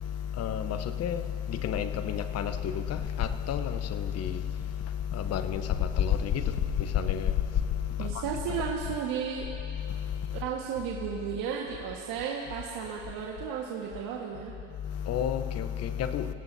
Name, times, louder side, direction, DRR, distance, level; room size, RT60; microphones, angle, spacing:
voice 1, 0.0-9.0 9.6-10.4 14.7-16.3, left 9 dB, 40° left, 0.9 m, -30 dB
voice 2, 8.0-9.5 10.3-14.6, right 7 dB, 55° right, 1.7 m, -34 dB
26.0 x 17.0 x 2.8 m
supercardioid pair, 105°, 40 cm